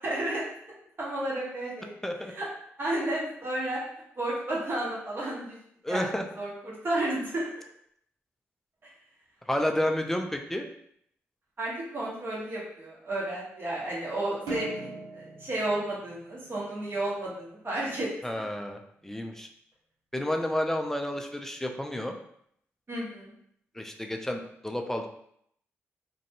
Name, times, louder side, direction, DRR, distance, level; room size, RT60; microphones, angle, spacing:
voice 1, 0.0-0.4 1.0-1.9 2.3-2.5 2.8-3.8 4.2-5.6 5.9-6.1 6.3-7.5 11.6-18.1 22.9-23.3, right 1 dB, 40° right, -5 dB, 1.2 m, -32 dB
voice 2, 2.0-2.3 5.8-6.2 9.5-10.7 18.2-19.5 20.1-22.2 23.8-25.1, left 1 dB, 5° left, 4 dB, 0.5 m, -30 dB
sound 1, 14.5-17.0, right 2 dB, 85° right, 0.6 m, -40 dB
2.5 x 2.2 x 2.8 m, 0.70 s
hypercardioid pair, 45°, 6 cm